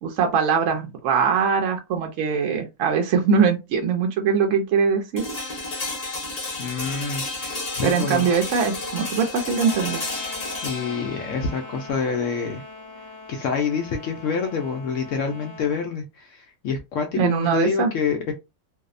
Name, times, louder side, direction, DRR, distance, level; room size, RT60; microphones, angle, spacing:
voice 1, 0.0-5.3 7.8-10.0 17.2-17.9, right 6 dB, 70° right, 0.8 m, -22 dB
sound 1, 5.2-15.1, left 2 dB, 35° left, 0.7 m, -33 dB
voice 2, 6.6-8.3 10.2-10.3 10.6-12.6 13.3-18.3, left 5 dB, 70° left, 0.7 m, -27 dB
sound 2, 9.6-15.8, left 3 dB, 30° right, 0.5 m, -42 dB
2.7 x 2.0 x 2.4 m
omnidirectional pair, 1.7 m